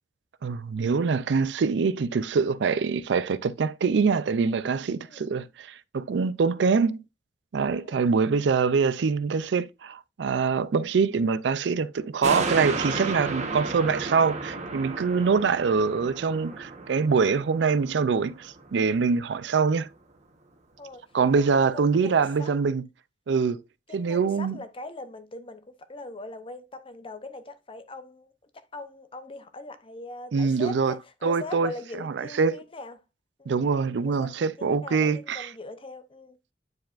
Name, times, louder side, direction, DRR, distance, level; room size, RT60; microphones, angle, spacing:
voice 1, 0.4-7.0 7.5-19.9 21.1-22.8 23.3-23.6 23.9-24.6 30.3-30.9 31.2-31.7 32.0-32.6 33.5-35.5, right 5 dB, 85° right, 0.4 m, -24 dB
voice 2, 5.0-5.3 7.7-8.0 15.1-15.4 20.8-21.0 21.3-22.5 23.9-33.0 33.4-33.6 34.2-36.4, left 2 dB, 30° left, 0.8 m, -41 dB
sound 1, 12.2-18.9 19.3-19.4, right 3 dB, 40° right, 1.1 m, -33 dB
9.4 x 4.7 x 2.5 m
head